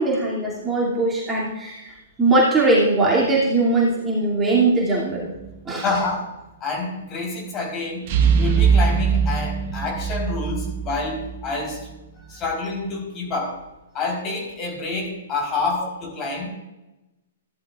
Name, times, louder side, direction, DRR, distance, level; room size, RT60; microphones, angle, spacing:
voice 1, 0.0-5.3 5.6-5.8, right 2 dB, 15° right, -5 dB, 2.7 m, -20 dB
sound 1, 5.2-5.7 8.1-11.8, right 6 dB, 45° right, 1.3 m, -22 dB
voice 2, 5.8-6.3 6.6-11.9 12.3-13.6 13.9-16.5, left 3 dB, 30° left, 0 dB, 4.0 m, -28 dB
15.0 x 11.0 x 2.5 m, 1.0 s
hypercardioid pair, 120°, 0 cm